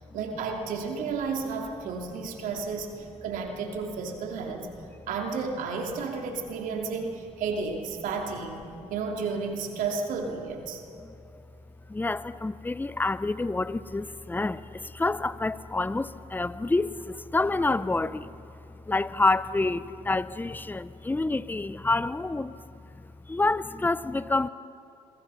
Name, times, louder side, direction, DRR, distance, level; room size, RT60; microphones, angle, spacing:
voice 1, 0.1-4.7 5.1-8.6 8.9-10.8, right 5 dB, 70° right, 2 dB, 2.8 m, -32 dB
voice 2, 11.9-18.4 18.9-22.5 23.3-24.5, left 2 dB, 15° left, 16 dB, 0.8 m, -28 dB
26.5 x 24.0 x 5.8 m, 2.6 s
hypercardioid pair, 60°, 14 cm